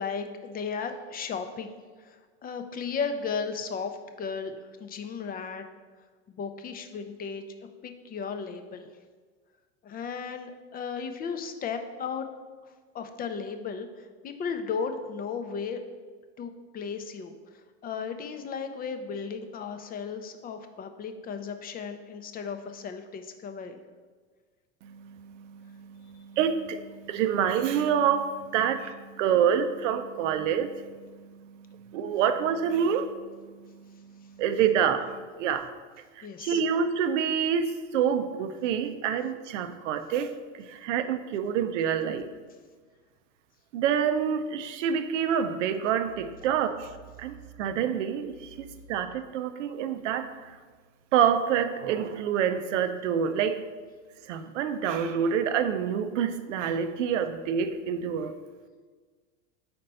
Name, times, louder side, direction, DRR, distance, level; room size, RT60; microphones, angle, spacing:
voice 1, 0.0-1.7 2.0-5.6 6.3-7.4 7.8-8.9 9.8-12.3 12.9-15.8 16.4-17.3 17.8-23.8 36.2-36.6, left 5 dB, 25° left, 7 dB, 0.5 m, -35 dB
voice 2, 24.8-35.7 36.2-42.3 43.7-46.9 47.2-50.6 51.1-53.6 54.3-58.3, right 8 dB, 90° right, 10 dB, 0.6 m, -27 dB
4.4 x 4.2 x 5.3 m, 1.5 s
supercardioid pair, 110°, 36 cm